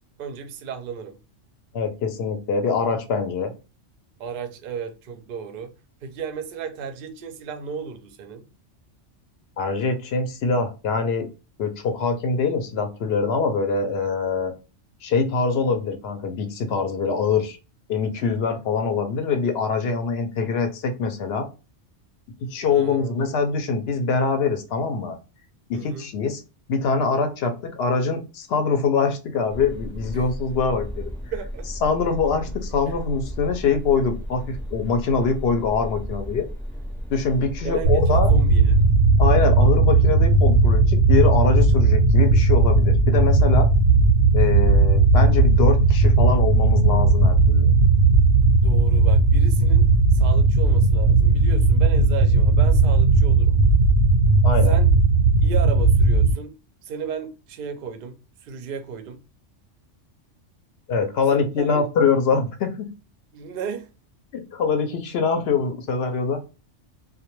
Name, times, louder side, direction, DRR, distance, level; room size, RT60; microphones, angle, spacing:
voice 1, 0.2-1.2 4.2-5.7 6.0-8.5 22.6-23.4 25.7-26.1 31.3-31.7 32.9-33.0 37.6-38.8 48.6-49.9 50.1-53.6 54.7-54.9 55.4-56.5 56.8-59.2 61.2-61.9 63.3-63.9, right 6 dB, 60° right, 0.6 m, -34 dB
voice 2, 1.7-3.5 9.6-11.3 11.6-14.5 15.0-17.6 17.9-21.5 22.4-25.2 25.7-26.4 26.7-31.1 31.8-36.5 37.1-38.3 39.2-43.7 44.3-47.7 54.4-54.7 60.9-62.9 64.3-66.4, left 5 dB, 65° left, 0.7 m, -24 dB
sound 1, 29.5-38.9, equal, 5° left, 0.5 m, -34 dB
sound 2, 37.8-56.3, right 3 dB, 90° right, 0.9 m, -16 dB
2.2 x 2.1 x 2.9 m
omnidirectional pair, 1.3 m